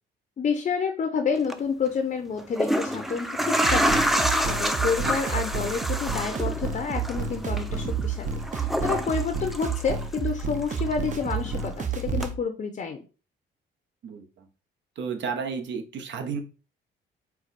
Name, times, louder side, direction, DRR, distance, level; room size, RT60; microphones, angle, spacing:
voice 1, 0.4-13.0, left 5 dB, 40° left, 6 dB, 0.7 m, -29 dB
sound 1, 1.3-1.5 2.4-10.4 10.7-11.8 12.2-12.3, equal, ahead, 0.5 m, -28 dB
sound 2, 3.6-12.4, right 5 dB, 40° right, 0.7 m, -30 dB
voice 2, 14.0-14.5 15.0-16.4, right 6 dB, 65° right, 4 dB, 1.0 m, -32 dB
4.6 x 2.2 x 4.1 m, 0.35 s
cardioid pair, 90°, 20 cm